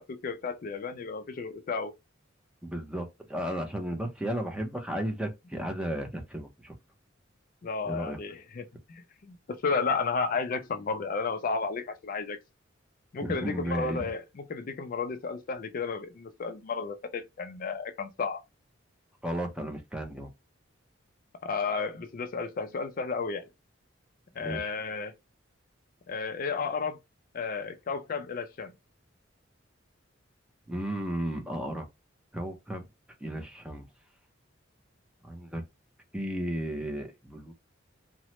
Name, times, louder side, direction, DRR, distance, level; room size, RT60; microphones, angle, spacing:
voice 1, 0.0-2.0 7.6-12.4 13.1-18.4 21.4-23.5 24.4-25.1 26.1-27.0 27.3-28.7, left 4 dB, 45° left, 0.4 m, -33 dB
voice 2, 2.6-6.7 7.9-8.2 13.2-14.1 19.2-20.3 24.4-24.7 30.7-31.8 32.3-32.8 33.2-33.9 35.2-35.6 36.1-37.5, right 1 dB, 5° right, 0.5 m, -34 dB
2.9 x 2.0 x 2.9 m
head